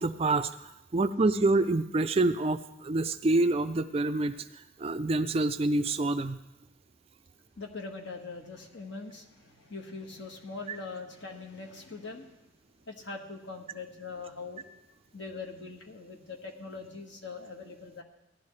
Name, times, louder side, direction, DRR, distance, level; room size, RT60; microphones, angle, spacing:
voice 1, 0.0-6.4, right 2 dB, 30° right, 10 dB, 0.4 m, -27 dB
voice 2, 7.6-12.4 12.9-14.6 15.1-18.0, left 4 dB, 60° left, 2 dB, 1.6 m, -42 dB
17.0 x 11.5 x 3.3 m, 0.91 s
head